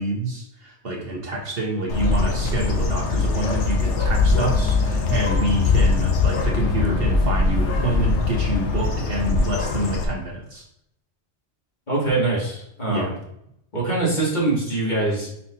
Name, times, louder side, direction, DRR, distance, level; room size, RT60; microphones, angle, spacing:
voice 1, 0.0-10.6 12.9-13.2, right 2 dB, 60° right, -1 dB, 1.5 m, -27 dB
Bird, 1.9-10.0, left 4 dB, 85° left, 1.2 m, -21 dB
voice 2, 11.9-13.1 13.7-15.3, right 2 dB, 40° left, -6 dB, 2.6 m, -23 dB
5.9 x 5.6 x 2.8 m, 0.76 s
omnidirectional pair, 1.2 m